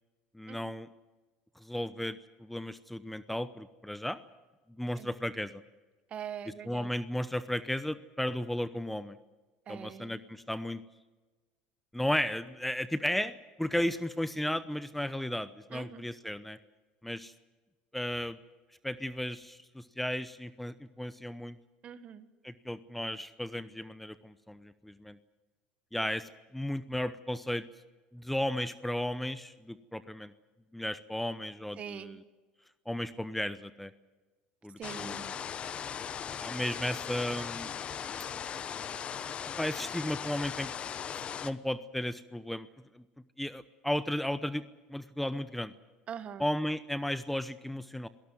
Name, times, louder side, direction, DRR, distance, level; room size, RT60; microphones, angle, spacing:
voice 1, 0.3-0.9 1.6-4.2 4.8-5.6 6.5-9.2 9.7-10.8 11.9-16.6 17.0-17.3 17.9-18.4 18.8-21.6 22.4-25.2 25.9-27.6 28.1-30.3 30.7-32.2 32.9-33.9 34.6-35.3 36.4-37.7 39.6-40.7 41.4-42.7 42.9-43.0 43.4-44.6 44.9-45.7 46.4-48.1, left 1 dB, 5° left, 14 dB, 0.8 m, -34 dB
voice 2, 6.1-6.9 9.7-10.2 15.7-16.1 21.8-22.3 31.8-32.2 34.8-35.3 46.1-46.4, right 8 dB, 45° right, 11 dB, 1.6 m, -43 dB
sound 1, 34.8-41.5, left 8 dB, 40° left, 1.1 m, -38 dB
27.0 x 18.0 x 7.7 m, 1.2 s
supercardioid pair, 95°, 3 cm